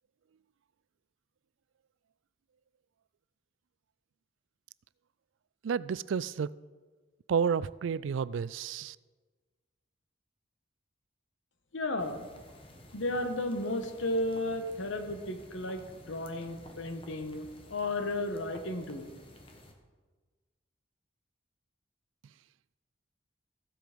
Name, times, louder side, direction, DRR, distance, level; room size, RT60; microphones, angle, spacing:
voice 1, 5.6-6.5 7.3-9.0, right 6 dB, 80° right, 0.3 m, -31 dB
voice 2, 11.7-12.3 12.9-19.1, left 1 dB, 90° left, 1.3 m, -34 dB
sound 1, 12.0-19.7, left 1 dB, 30° left, 1.3 m, -53 dB
15.0 x 7.8 x 5.2 m
head